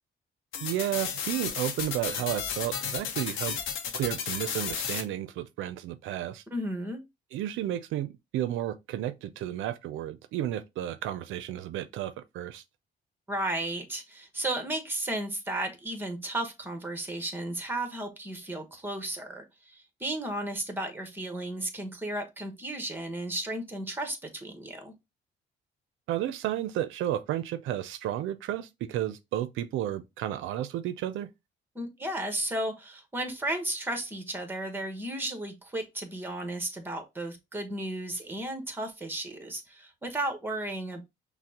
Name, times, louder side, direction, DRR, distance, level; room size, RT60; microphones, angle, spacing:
sound 1, 0.5-5.0, left 7 dB, 85° left, 0.7 m, -33 dB
voice 1, 0.6-3.6 3.9-6.4 7.3-12.6 26.1-31.3, right 12 dB, 85° right, 0.4 m, -32 dB
voice 2, 6.5-7.0 13.3-24.9 31.7-41.0, right 1 dB, 10° right, 1.0 m, -34 dB
5.7 x 2.1 x 2.8 m
cardioid pair, 90°, 20 cm